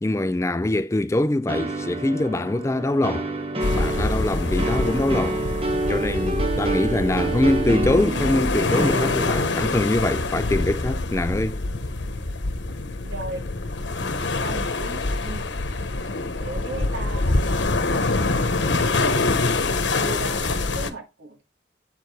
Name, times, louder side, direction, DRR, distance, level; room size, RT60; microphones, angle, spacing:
voice 1, 0.0-3.3 3.7-5.4 5.9-11.6, left 1 dB, 15° left, 0.3 m, -23 dB
sound 1, 1.5-9.7, right 2 dB, 30° right, 1.0 m, -28 dB
sound 2, 3.6-20.9, left 3 dB, 75° left, 1.0 m, -25 dB
voice 2, 6.3-6.8 13.0-13.5 14.4-15.5 16.3-19.2 20.0-21.4, right 3 dB, 85° right, 2.5 m, -37 dB
7.7 x 4.8 x 4.5 m
head